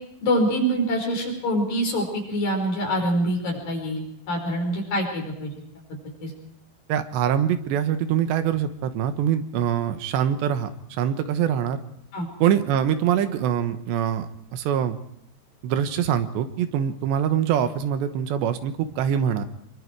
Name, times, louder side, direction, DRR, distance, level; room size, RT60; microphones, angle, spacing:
voice 1, 0.2-5.5 6.2-6.3 12.1-12.3, equal, 55° left, 1 dB, 6.8 m, -25 dB
voice 2, 6.9-11.8 12.4-15.0 15.6-19.4, right 9 dB, 80° right, 9 dB, 3.4 m, -24 dB
25.5 x 23.0 x 4.7 m, 0.74 s
omnidirectional pair, 5.1 m